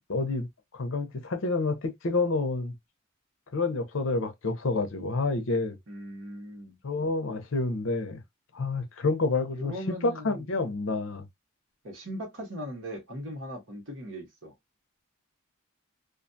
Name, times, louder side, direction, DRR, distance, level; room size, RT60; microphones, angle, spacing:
voice 1, 0.1-2.7 3.5-5.8 6.8-8.2 8.5-11.3, left 3 dB, 70° left, 0.6 m, -29 dB
voice 2, 5.9-6.8 9.5-10.4 11.8-14.5, equal, 70° right, 1.1 m, -39 dB
2.4 x 2.3 x 2.5 m
head